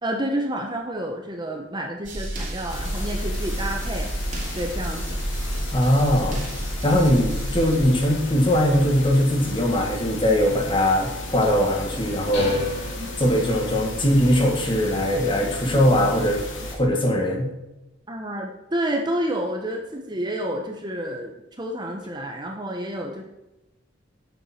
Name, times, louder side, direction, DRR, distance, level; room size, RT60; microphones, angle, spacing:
voice 1, 0.0-4.1 4.5-5.2 6.0-6.1 13.0-13.1 15.7-16.0 18.1-23.2, right 1 dB, 20° right, 2 dB, 1.1 m, -29 dB
sound 1, 2.0-7.8, right 1 dB, 40° right, 3.2 m, -30 dB
sound 2, 2.7-16.8, left 1 dB, 80° left, 2.6 m, -34 dB
voice 2, 5.7-6.4 6.8-12.6 13.2-16.4 16.7-17.5, equal, 25° left, 1 dB, 2.0 m, -20 dB
sound 3, 12.3-14.0, left 1 dB, 65° left, 4.5 m, -35 dB
12.0 x 8.2 x 4.5 m, 0.98 s
head